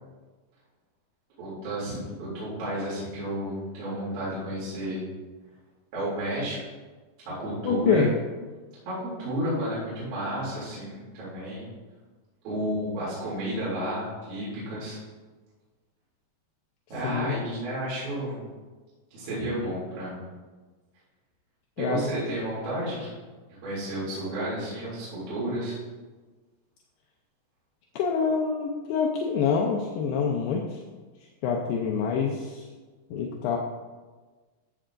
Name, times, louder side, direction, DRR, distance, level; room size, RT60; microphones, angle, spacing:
voice 1, 1.4-5.0 5.9-6.6 7.3-8.1 8.9-11.7 12.4-15.0 16.9-18.4 19.1-20.3 21.8-23.1 23.6-25.8, right 1 dB, 60° right, -9 dB, 4.4 m, -32 dB
voice 2, 7.6-8.1 17.0-17.3 21.8-22.0 28.0-30.8 31.4-32.7 33.1-33.6, left 6 dB, 80° left, 0 dB, 2.1 m, -26 dB
14.5 x 7.7 x 2.5 m, 1.3 s
omnidirectional pair, 4.8 m